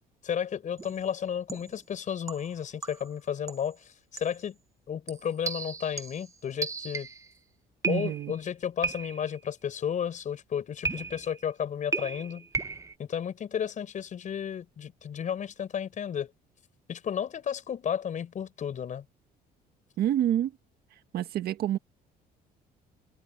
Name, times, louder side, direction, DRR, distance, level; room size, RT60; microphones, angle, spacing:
voice 1, 0.2-3.8 4.1-4.6 4.9-7.1 7.9-12.5 13.0-16.3 16.9-19.0, left 8 dB, 50° left, 5.9 m, -33 dB
sound 1, 0.8-1.0 1.5-1.8 2.3-3.2 3.5-3.7 4.2-4.4 5.1-7.3 7.8-8.4 8.8-9.4 10.8-11.4 11.9-13.0, right 4 dB, 20° right, 0.9 m, -35 dB
voice 2, 7.8-8.3 20.0-20.5 21.1-21.8, right 11 dB, 65° right, 1.8 m, -27 dB
cardioid pair, 110°, 17 cm